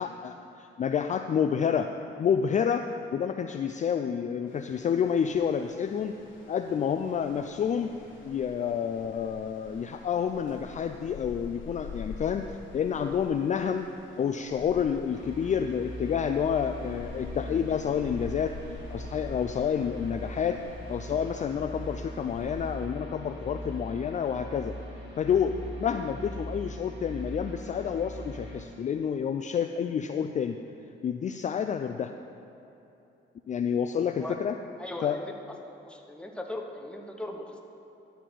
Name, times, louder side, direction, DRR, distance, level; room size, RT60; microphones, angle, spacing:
voice 1, 0.0-1.9 2.2-6.2 6.5-13.9 14.2-18.6 18.9-20.6 20.9-24.8 25.2-30.6 31.0-32.1 33.5-34.6 35.0-35.2, left 7 dB, 40° left, 6 dB, 0.4 m, -29 dB
sound 1, 4.5-22.8, left 4 dB, 75° left, 2.1 m, -47 dB
sound 2, 15.1-28.7, equal, 65° right, 2.2 m, -41 dB
voice 2, 34.8-35.3 35.6-37.6, left 1 dB, 5° left, 2 dB, 1.1 m, -39 dB
11.0 x 4.2 x 7.6 m, 2.9 s
cardioid pair, 90°, 20 cm